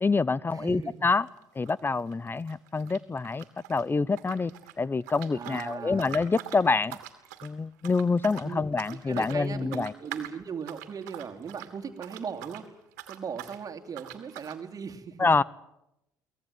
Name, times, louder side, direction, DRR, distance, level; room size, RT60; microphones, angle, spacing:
voice 1, 0.0-1.3 1.5-7.0 7.4-9.9 15.2-15.4, left 4 dB, 25° left, 0.8 m, -26 dB
voice 2, 0.5-1.0 5.3-6.0 8.4-8.6 8.9-12.7 13.1-15.3, right 6 dB, 40° right, 2.8 m, -38 dB
sound 1, 0.8-1.0 1.3-3.8 4.1-12.7 12.9-13.6 13.9-14.6, right 14 dB, 80° right, 2.3 m, -44 dB
24.0 x 18.5 x 9.5 m
hypercardioid pair, 60°, 9 cm